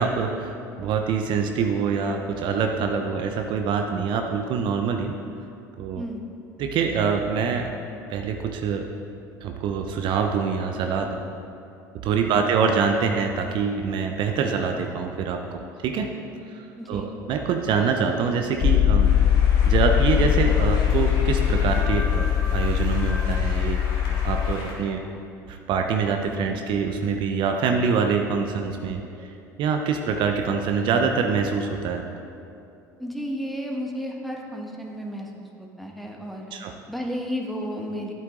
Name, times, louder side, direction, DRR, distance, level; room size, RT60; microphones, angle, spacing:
voice 1, 0.0-5.1 5.8-6.0 6.6-7.7 8.1-8.9 9.4-11.2 12.0-16.1 16.5-19.1 19.7-25.0 25.5-29.3 29.6-32.0 36.5-36.7, right 5 dB, 55° right, 4 dB, 0.7 m, -25 dB
voice 2, 12.2-12.6 16.8-17.1 33.0-36.5 36.9-38.1, equal, ahead, 0 dB, 1.5 m, -33 dB
sound 1, 18.6-24.5, left 10 dB, 40° left, 0.4 m, -21 dB
sound 2, 19.0-24.8, left 1 dB, 55° left, 2.2 m, -38 dB
12.0 x 8.1 x 3.8 m, 2.6 s
hypercardioid pair, 65°, 10 cm